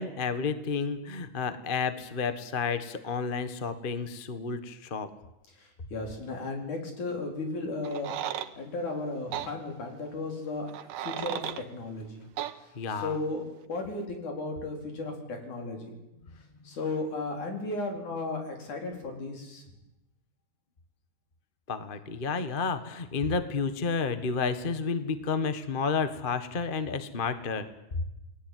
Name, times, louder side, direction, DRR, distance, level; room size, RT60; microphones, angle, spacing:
voice 1, 0.0-5.1 12.7-13.2 17.5-17.7 21.7-27.7, left 5 dB, 40° left, 11 dB, 0.7 m, -31 dB
voice 2, 5.9-8.1 8.6-11.4 11.7-12.3 13.0-13.4 13.7-16.0 16.7-19.6, left 2 dB, 65° left, 3 dB, 5.8 m, -35 dB
sound 1, 7.8-8.5 9.3-9.5 10.7-11.6 12.4-12.5, right 11 dB, 80° right, 2.7 m, -34 dB
29.0 x 20.5 x 9.4 m, 0.95 s
omnidirectional pair, 3.7 m